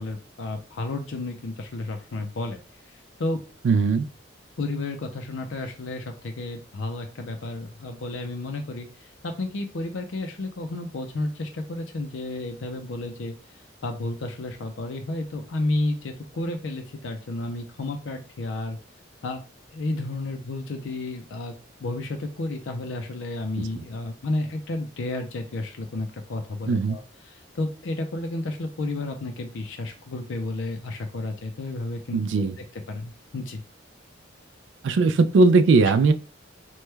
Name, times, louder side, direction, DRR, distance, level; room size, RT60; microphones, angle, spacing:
voice 1, 0.0-2.6 2.9-3.4 4.6-13.3 13.8-18.8 19.2-19.4 19.7-21.5 21.8-32.5 32.9-33.6, left 2 dB, 80° left, 4 dB, 0.5 m, -32 dB
voice 2, 3.6-4.1 23.6-23.8 26.7-27.0 32.1-32.6 34.8-36.1, right 3 dB, 70° right, 11 dB, 0.3 m, -19 dB
3.0 x 2.2 x 3.3 m, 0.35 s
head